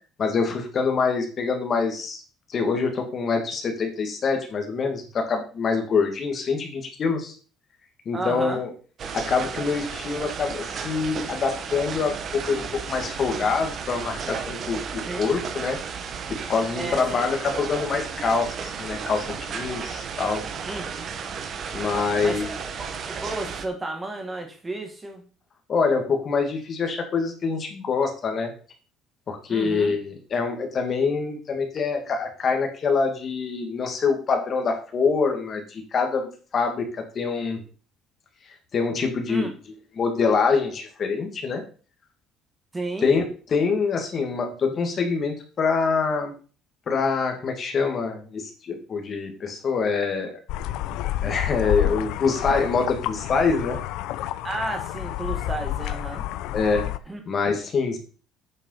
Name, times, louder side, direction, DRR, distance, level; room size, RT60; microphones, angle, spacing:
voice 1, 0.2-2.2 2.5-7.4 8.1-8.7 9.1-15.8 16.3-20.5 21.7-22.5 25.7-28.5 29.3-37.6 38.7-41.6 43.0-46.3 46.9-50.4 51.2-53.8 56.5-56.9 57.3-58.0, left 5 dB, 35° left, 4 dB, 2.2 m, -25 dB
voice 2, 8.1-8.6 15.1-15.3 16.8-17.3 20.6-21.1 22.2-22.6 23.1-25.2 29.5-29.9 39.3-39.5 42.7-43.1 54.4-56.2 57.1-57.2, right 2 dB, 15° right, 4 dB, 1.9 m, -32 dB
sound 1, 9.0-23.6, right 6 dB, 40° right, 1.4 m, -33 dB
sound 2, 50.5-57.0, left 13 dB, 80° left, 0.7 m, -29 dB
8.6 x 6.7 x 5.7 m, 0.38 s
cardioid pair, 150°, 0 cm